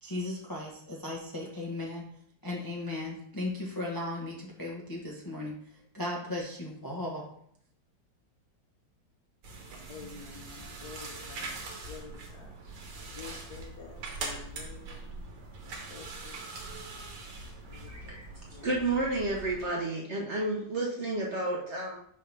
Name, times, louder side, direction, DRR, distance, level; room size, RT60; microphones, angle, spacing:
voice 1, 0.0-2.0 2.4-5.5 5.9-7.2, left 2 dB, 20° left, -3 dB, 0.5 m, -36 dB
sound 1, 9.4-19.7, right 3 dB, 70° right, 1.6 m, -42 dB
voice 2, 9.9-11.6 11.9-12.5 13.2-15.0 15.7-16.4 17.7-18.2 18.5-18.7, left 6 dB, 65° left, 4 dB, 1.1 m, -49 dB
voice 3, 17.9-18.3 18.6-22.0, right 2 dB, 50° right, -2 dB, 0.9 m, -31 dB
5.5 x 5.2 x 3.3 m, 0.66 s
omnidirectional pair, 2.0 m